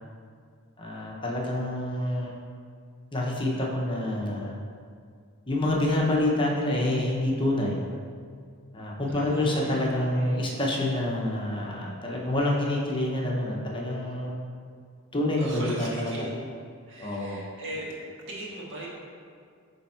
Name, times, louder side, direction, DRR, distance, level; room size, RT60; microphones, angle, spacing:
voice 1, 0.8-2.3 3.1-4.6 5.5-7.8 8.7-14.4 15.1-16.2 17.0-17.4, left 1 dB, 25° left, -2 dB, 0.8 m, -27 dB
voice 2, 9.1-10.5 12.5-12.8 15.4-16.3 16.9-17.9 18.3-18.9, right 1 dB, 60° right, -4 dB, 1.5 m, -40 dB
8.6 x 3.5 x 4.4 m, 2.2 s
head